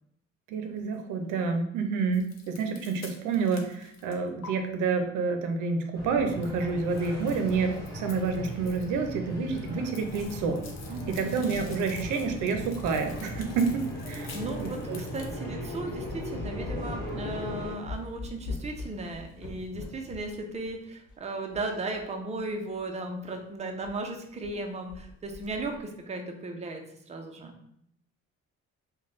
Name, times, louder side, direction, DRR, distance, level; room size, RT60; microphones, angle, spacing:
voice 1, 0.5-10.6 11.1-13.8 14.1-14.3 14.6-15.0, right 4 dB, 85° right, 5 dB, 0.6 m, -29 dB
sound 1, 2.1-4.5 6.4-9.1 9.3-15.3, left 5 dB, 60° left, 0.7 m, -49 dB
sound 2, 5.9-17.7, equal, 10° left, 1.4 m, -38 dB
sound 3, 10.1-11.1 11.4-14.4 15.0-15.1 15.5-15.7 16.0-22.1 22.4-22.5 22.7-22.8 23.2-23.4 23.8-24.0 24.2-24.6 24.9-25.8, left 3 dB, 80° left, 1.0 m, -43 dB
voice 2, 10.9-11.3 14.3-27.6, right 2 dB, 20° right, 3 dB, 0.5 m, -36 dB
3.1 x 2.2 x 3.9 m, 0.72 s
cardioid pair, 90°, 30 cm